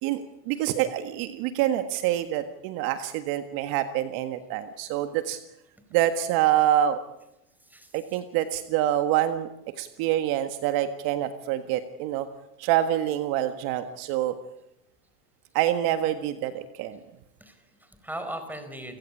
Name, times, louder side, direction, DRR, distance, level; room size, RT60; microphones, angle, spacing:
voice 1, 0.0-5.4 5.9-7.0 7.9-9.5 9.8-12.3 12.6-14.3 15.5-17.0, right 12 dB, 50° right, 9 dB, 1.7 m, -26 dB
voice 2, 7.6-8.2 17.4-19.0, right 1 dB, 5° right, 7 dB, 4.6 m, -39 dB
29.5 x 16.5 x 8.6 m, 0.87 s
supercardioid pair, 130°, 47 cm